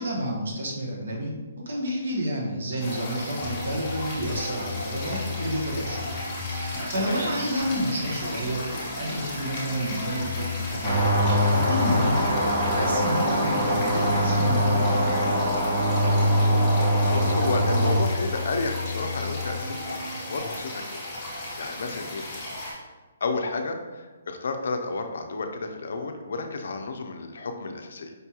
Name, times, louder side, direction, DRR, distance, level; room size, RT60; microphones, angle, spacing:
voice 1, 0.0-6.2 6.4-11.2 11.4-15.3, equal, 65° right, -1 dB, 1.0 m, -30 dB
sound 1, 2.8-22.7, left 1 dB, 20° left, 1.1 m, -36 dB
sound 2, 3.4-20.4, left 4 dB, 45° right, 1.3 m, -35 dB
sound 3, 10.8-18.0, equal, 25° right, 0.8 m, -23 dB
voice 2, 15.0-15.4 17.1-21.0 21.6-22.2 23.2-28.1, left 3 dB, 65° left, 5 dB, 0.4 m, -32 dB
5.1 x 2.3 x 2.8 m, 1.3 s
hypercardioid pair, 170°, 0 cm